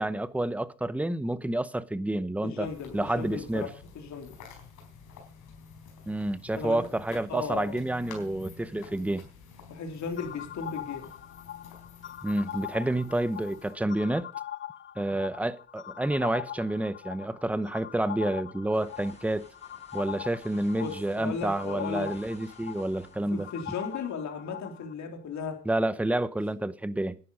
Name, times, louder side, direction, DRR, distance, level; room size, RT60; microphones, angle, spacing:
voice 1, 0.0-2.7 2.9-3.7 6.1-9.3 12.2-14.3 15.0-19.4 19.9-23.5 25.7-27.2, right 1 dB, 5° right, 0.8 m, -29 dB
voice 2, 2.4-4.3 6.5-6.9 7.3-7.9 9.7-11.1 20.8-22.1 23.3-25.6, left 5 dB, 65° left, 3.3 m, -36 dB
sound 1, 2.6-13.7, left 5 dB, 90° left, 4.3 m, -50 dB
sound 2, 10.2-24.9, left 11 dB, 40° left, 0.7 m, -42 dB
sound 3, 18.7-24.1, left 2 dB, 20° left, 5.4 m, -56 dB
11.0 x 10.0 x 5.4 m
cardioid pair, 90°, 30 cm